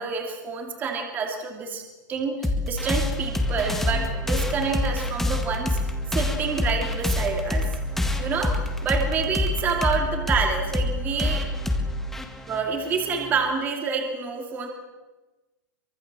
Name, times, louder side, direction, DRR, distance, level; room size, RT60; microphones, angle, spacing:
voice 1, 0.0-1.8 2.1-5.8 6.1-7.8 8.2-11.4 12.5-14.7, right 5 dB, 15° right, 3 dB, 2.6 m, -28 dB
sound 1, 2.4-13.5, left 1 dB, 5° left, 1.8 m, -26 dB
24.0 x 22.5 x 7.6 m, 1.2 s
supercardioid pair, 165°, 10 cm